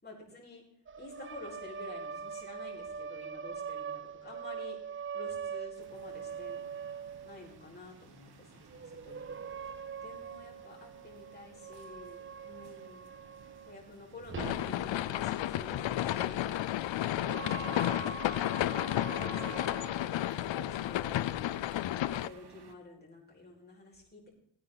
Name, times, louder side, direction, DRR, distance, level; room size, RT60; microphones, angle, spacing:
voice 1, 0.0-0.6 1.0-4.8 5.1-6.6 7.2-9.3 10.0-13.1 13.7-16.6 18.6-19.6 20.0-21.4 22.2-24.3, left 2 dB, 20° left, -3 dB, 5.1 m, -50 dB
sound 1, 0.9-7.6 8.7-13.8 14.2-20.7, right 6 dB, 30° right, 0.4 m, -43 dB
sound 2, 5.8-22.7, right 6 dB, 60° right, 1.5 m, -57 dB
sound 3, 14.4-22.3, left 13 dB, 80° left, 0.6 m, -32 dB
18.0 x 9.5 x 4.0 m, 0.70 s
wide cardioid pair, 105°, 44 cm